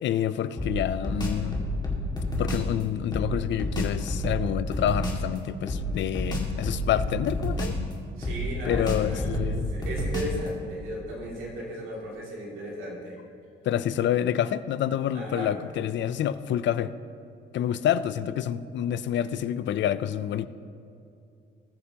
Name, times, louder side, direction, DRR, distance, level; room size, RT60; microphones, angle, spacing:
voice 1, 0.0-1.6 2.4-7.7 8.7-9.7 13.6-16.9 17.5-20.5, left 10 dB, 70° left, 14 dB, 0.5 m, -28 dB
sound 1, 0.6-2.7 3.1-5.3 5.7-7.9 8.2-10.5, left 1 dB, 20° left, 2.0 m, -29 dB
voice 2, 8.2-13.2 15.1-15.6, equal, 90° right, -3 dB, 2.5 m, -36 dB
19.5 x 6.7 x 2.9 m, 2.5 s
cardioid pair, 90°, 20 cm